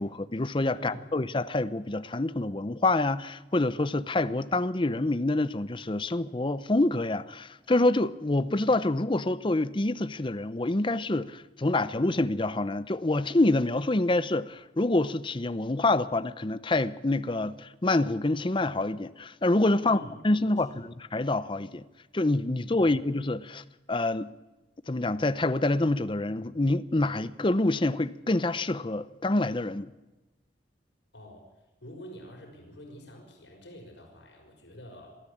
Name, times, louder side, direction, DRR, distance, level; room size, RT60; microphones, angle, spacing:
voice 1, 0.0-20.0 20.2-21.8 22.1-24.3 24.9-29.9, left 2 dB, 30° left, 0.7 m, -27 dB
voice 2, 0.7-1.1 19.8-20.8 22.8-23.0 31.1-31.5 31.8-35.2, equal, 80° left, 5.9 m, -47 dB
22.5 x 13.5 x 8.7 m
head